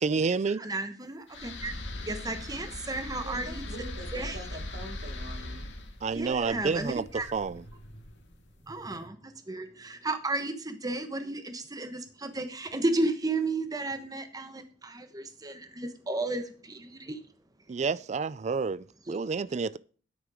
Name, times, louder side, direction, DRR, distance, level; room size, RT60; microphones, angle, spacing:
voice 1, 0.0-0.6 6.0-7.6 17.7-19.8, right 4 dB, 40° right, 0.4 m, -29 dB
voice 2, 0.6-1.7 2.1-3.6 4.1-4.4 6.1-7.3 8.7-17.2, right 2 dB, 20° right, 1.1 m, -33 dB
sound 1, 1.3-8.5, left 1 dB, 70° left, 2.0 m, -40 dB
voice 3, 3.2-5.7, right 1 dB, 65° right, 4.4 m, -44 dB
9.6 x 8.9 x 4.9 m
head